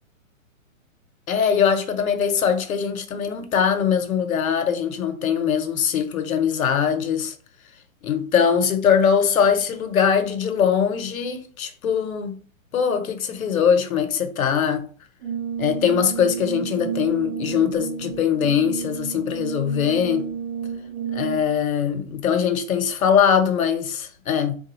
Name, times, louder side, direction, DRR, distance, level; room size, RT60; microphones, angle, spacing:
voice 1, 1.3-7.3 8.0-12.4 12.7-14.9 15.6-20.3 21.1-24.6, left 7 dB, 80° left, 0.8 m, -21 dB
Brass instrument, 15.2-21.6, right 7 dB, 45° right, 1.0 m, -31 dB
3.3 x 2.3 x 3.0 m
hypercardioid pair, 160°, 41 cm